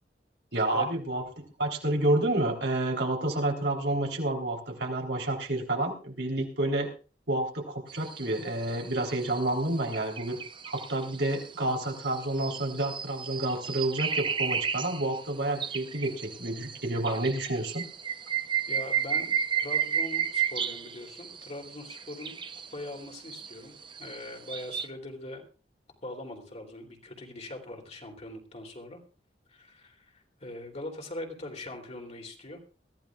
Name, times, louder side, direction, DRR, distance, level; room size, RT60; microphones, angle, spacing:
voice 1, 0.5-6.9 7.3-10.4 10.7-17.8, right 1 dB, 75° right, 1 dB, 3.6 m, -29 dB
sound 1, 7.9-24.9, right 7 dB, 30° right, 0.7 m, -34 dB
voice 2, 18.7-22.4 22.7-25.4 26.0-29.0 29.5-32.6, left 1 dB, 40° left, 2 dB, 3.0 m, -42 dB
22.0 x 14.5 x 2.4 m, 0.36 s
head